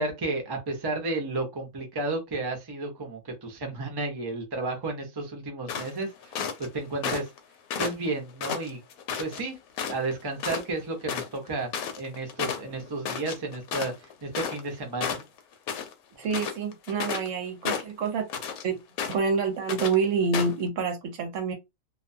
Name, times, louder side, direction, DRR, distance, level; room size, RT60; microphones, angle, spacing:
voice 1, 0.0-6.3 6.6-7.3 7.8-8.8 9.2-9.6 9.9-11.7 12.0-15.2, right 2 dB, 30° right, 0.5 m, -32 dB
sound 1, 5.7-6.7 7.0-7.4 7.7-9.4 9.8-10.1 10.4-10.6 10.9-14.7 15.0-15.9 16.2-17.3 17.6-18.6 19.0-19.4 19.7-19.9 20.3-20.6, left 7 dB, 85° left, 1.1 m, -32 dB
voice 2, 16.2-18.3 18.6-18.8 19.1-21.5, right 5 dB, 65° right, 0.9 m, -27 dB
2.5 x 2.2 x 2.6 m
omnidirectional pair, 1.5 m